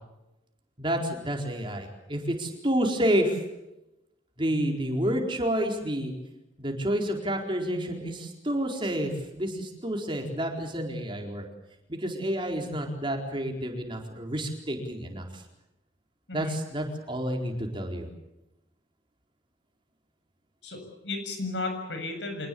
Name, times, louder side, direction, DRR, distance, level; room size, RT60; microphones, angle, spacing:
voice 1, 0.8-3.4 4.4-6.1 6.6-11.4 11.9-15.4 16.3-18.1, equal, 25° right, 2 dB, 4.3 m, -29 dB
voice 2, 20.6-22.5, left 2 dB, 70° left, 5 dB, 7.4 m, -34 dB
26.0 x 19.0 x 8.6 m, 0.92 s
head